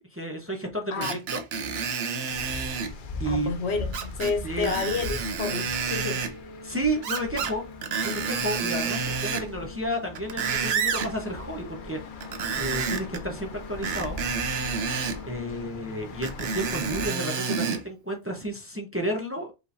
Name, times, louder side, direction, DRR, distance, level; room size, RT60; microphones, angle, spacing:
voice 1, 0.1-1.4 3.2-3.5 4.4-4.7 6.6-7.6 8.0-12.0 12.5-14.2 15.3-19.5, right 1 dB, 15° right, 0.7 m, -31 dB
Screech, 1.0-2.9 3.9-4.3 4.6-6.3 7.0-7.5 7.8-9.5 10.0-11.1 12.2-13.2 13.8-15.2 16.2-17.8 18.4-18.5, right 5 dB, 70° right, 1.0 m, -29 dB
sound 1, 2.3-17.1, left 3 dB, 55° left, 0.7 m, -40 dB
voice 2, 3.3-6.2, left 4 dB, 80° left, 1.2 m, -30 dB
Organ, 5.8-16.6, left 3 dB, 40° left, 0.3 m, -46 dB
5.1 x 3.2 x 2.6 m
omnidirectional pair, 1.1 m